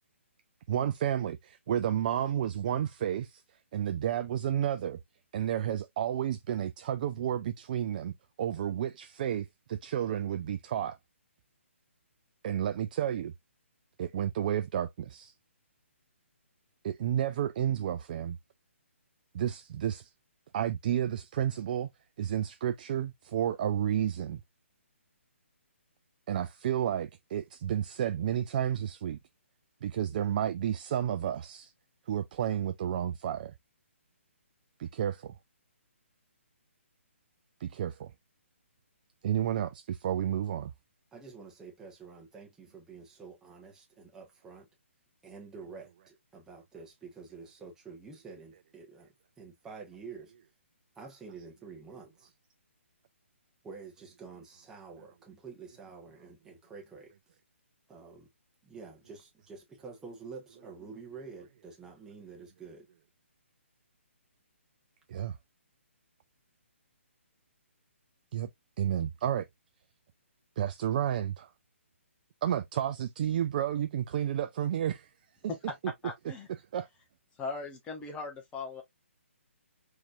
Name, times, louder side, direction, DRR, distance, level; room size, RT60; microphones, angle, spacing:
voice 1, 0.7-3.4 3.7-5.0 5.3-8.1 8.4-11.0 12.4-13.3 14.0-15.3 16.8-18.4 19.3-20.1 20.5-21.9 22.2-24.4 26.3-29.2 29.8-31.7 32.1-33.5 34.8-35.3 37.6-38.1 39.2-40.7 65.1-65.4 68.3-68.5 68.8-69.4 70.6-71.5 72.4-75.1 75.4-76.9, right 10 dB, 40° right, 0.4 m, -31 dB
voice 2, 41.1-44.7 45.2-50.3 50.9-52.3 53.6-57.1 57.9-58.3 58.6-62.9, right 5 dB, 10° right, 1.2 m, -48 dB
voice 3, 76.0-76.5 77.4-78.8, left 4 dB, 15° left, 0.9 m, -39 dB
4.3 x 3.1 x 2.4 m
figure-of-eight pair, 135°, 7 cm